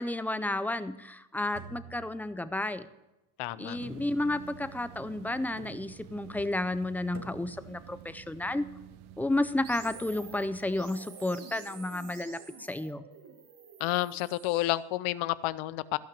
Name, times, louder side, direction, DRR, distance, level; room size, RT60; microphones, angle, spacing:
voice 1, 0.0-2.9 3.6-8.6 9.2-13.0, left 2 dB, 5° left, 13 dB, 0.3 m, -32 dB
sound 1, 1.5-2.7 3.8-4.6 5.6-6.2 7.1-7.8, right 4 dB, 35° right, 1.8 m, -49 dB
voice 2, 3.4-3.8 13.8-16.0, left 17 dB, 80° left, 18 dB, 0.7 m, -30 dB
sound 2, 3.7-10.9, right 11 dB, 75° right, 0.8 m, -50 dB
sound 3, 9.6-14.7, right 5 dB, 55° right, 2.3 m, -49 dB
14.5 x 5.8 x 7.4 m, 0.99 s
cardioid pair, 100°, 49 cm